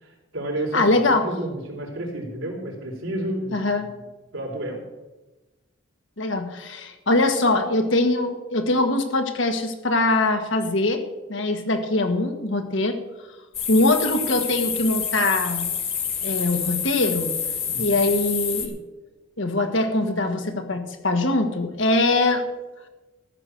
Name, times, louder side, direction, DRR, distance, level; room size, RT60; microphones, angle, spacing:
voice 1, 0.0-3.9 4.3-4.8 17.7-18.0, right 1 dB, 80° right, -1 dB, 3.8 m, -31 dB
voice 2, 0.7-1.3 3.5-3.9 6.2-11.0 11.3-13.0 13.7-15.7 16.2-17.3 17.8-18.8 19.4-22.5, left 2 dB, 70° left, 5 dB, 1.7 m, -22 dB
sound 1, 13.5-18.7, left 7 dB, 30° left, 1.7 m, -28 dB
14.0 x 6.2 x 8.0 m, 1.1 s
head